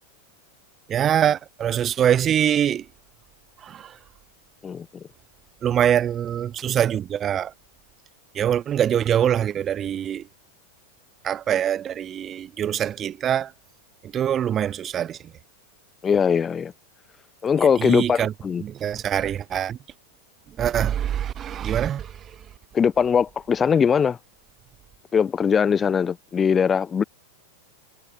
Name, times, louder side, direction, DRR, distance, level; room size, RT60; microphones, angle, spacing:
voice 1, 0.9-2.8 3.6-3.9 5.6-7.5 8.3-10.2 11.2-13.5 14.1-15.2 17.8-18.3 18.6-19.8 20.6-22.1, right 10 dB, 25° right, 0.8 m, -23 dB
voice 2, 4.6-5.0 16.0-16.7 17.4-18.6 22.7-24.2 25.1-27.0, left 7 dB, 20° left, 0.5 m, -21 dB
figure-of-eight pair, 90°, 0 cm